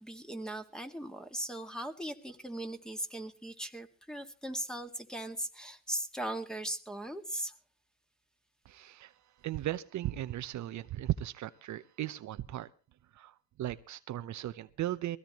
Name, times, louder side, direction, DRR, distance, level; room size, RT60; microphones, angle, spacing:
voice 1, 0.0-7.5, right 1 dB, ahead, 7 dB, 1.9 m, -39 dB
voice 2, 8.6-9.1 9.4-12.7 13.1-15.2, right 13 dB, 70° right, 12 dB, 0.8 m, -37 dB
21.5 x 16.0 x 3.0 m, 0.34 s
cardioid pair, 90°, 30 cm